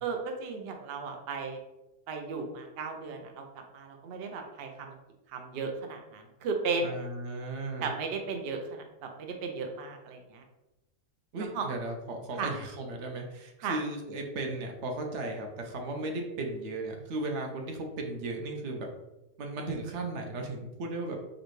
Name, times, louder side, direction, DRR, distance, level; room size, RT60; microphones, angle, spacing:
voice 1, 0.0-1.6 2.1-5.0 5.3-7.0 7.8-10.4 11.5-11.7 12.4-12.5 13.6-13.8, right 4 dB, 90° right, 3 dB, 0.5 m, -35 dB
voice 2, 6.8-7.9 11.3-18.9 19.4-21.4, right 2 dB, 60° right, 3 dB, 0.8 m, -36 dB
4.9 x 2.3 x 3.1 m, 0.98 s
omnidirectional pair, 1.7 m